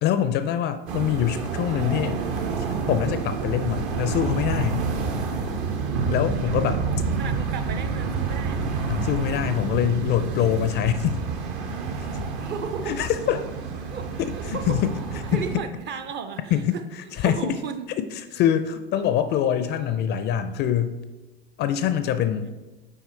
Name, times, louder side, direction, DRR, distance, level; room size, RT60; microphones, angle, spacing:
voice 1, 0.0-2.2 2.9-4.9 6.1-6.8 8.9-11.2 12.1-12.2 12.9-13.4 14.5-14.9 15.3-15.4 16.5-16.8 17.1-17.6 18.3-21.0 21.6-22.5, left 10 dB, 35° left, 11 dB, 0.4 m, -24 dB
sound 1, 0.9-15.6, right 4 dB, 55° right, 1.0 m, -28 dB
voice 2, 6.4-8.6 9.7-10.5 12.4-13.1 13.9-14.8 15.3-16.9 17.2-17.9 22.4-22.5, right 5 dB, 35° right, 8 dB, 0.6 m, -35 dB
6.3 x 4.6 x 4.3 m, 1.2 s
figure-of-eight pair, 80°, 32 cm